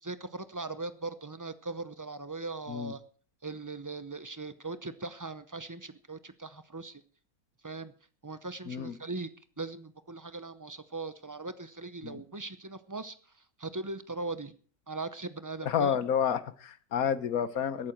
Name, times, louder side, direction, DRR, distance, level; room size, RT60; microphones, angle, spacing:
voice 1, 0.0-3.0 3.4-7.0 7.6-7.9 8.2-9.3 9.6-13.1 13.6-14.5 14.9-16.0, right 3 dB, 30° right, 12 dB, 0.3 m, -39 dB
voice 2, 15.6-17.9, left 8 dB, 70° left, 14 dB, 1.4 m, -30 dB
21.5 x 8.9 x 4.5 m, 0.43 s
omnidirectional pair, 1.6 m